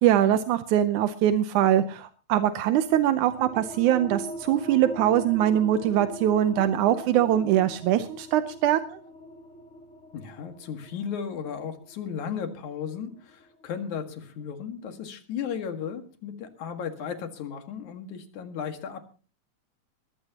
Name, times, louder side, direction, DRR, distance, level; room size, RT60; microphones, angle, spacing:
voice 1, 0.0-9.0, right 11 dB, 85° right, 10 dB, 2.3 m, -22 dB
sound 1, 2.8-14.1, equal, 35° left, 1.2 m, -42 dB
voice 2, 10.1-19.0, left 7 dB, 80° left, 6 dB, 3.2 m, -35 dB
21.0 x 15.5 x 2.9 m, 0.37 s
omnidirectional pair, 3.4 m